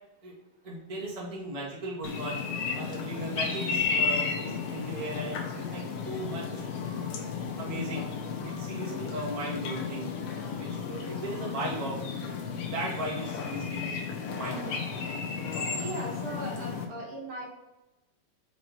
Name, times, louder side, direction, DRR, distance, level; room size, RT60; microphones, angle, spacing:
voice 1, 0.6-2.4 2.7-6.7 7.6-8.1 8.4-12.4 12.7-13.9 14.3-14.9, right 1 dB, 70° right, -5 dB, 0.3 m, -37 dB
sound 1, 2.0-16.8, left 5 dB, 75° left, 1.4 m, -33 dB
voice 2, 15.7-17.5, right 1 dB, 55° right, -4 dB, 1.9 m, -38 dB
5.3 x 4.6 x 4.1 m, 0.97 s
omnidirectional pair, 3.8 m